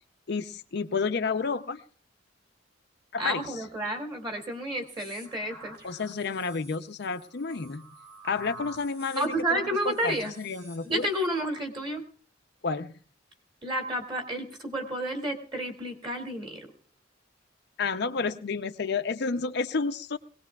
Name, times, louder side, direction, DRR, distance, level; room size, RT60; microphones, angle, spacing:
voice 1, 0.3-1.8 3.1-3.6 5.8-7.9 8.2-11.1 12.6-12.9 17.8-20.2, left 4 dB, 60° left, 8 dB, 0.6 m, -30 dB
voice 2, 3.2-5.8 9.2-10.3 10.8-12.0 13.6-16.7, right 1 dB, 25° right, 2 dB, 2.5 m, -31 dB
sound 1, 4.9-11.4, right 1 dB, 65° right, 3.9 m, -48 dB
21.0 x 18.0 x 2.3 m, 0.43 s
head